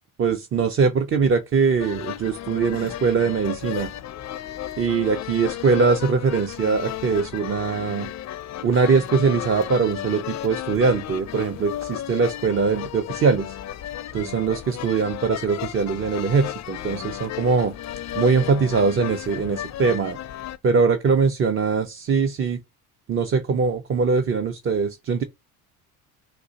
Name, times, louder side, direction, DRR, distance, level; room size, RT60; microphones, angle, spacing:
voice 1, 0.2-3.9 4.8-8.1 8.6-13.6 14.1-17.7 18.2-20.2 20.6-22.6 23.1-25.2, right 5 dB, 30° right, 0.5 m, -22 dB
sound 1, 1.8-20.6, left 12 dB, 40° left, 0.5 m, -34 dB
3.9 x 2.4 x 2.8 m
hypercardioid pair, 65°, 43 cm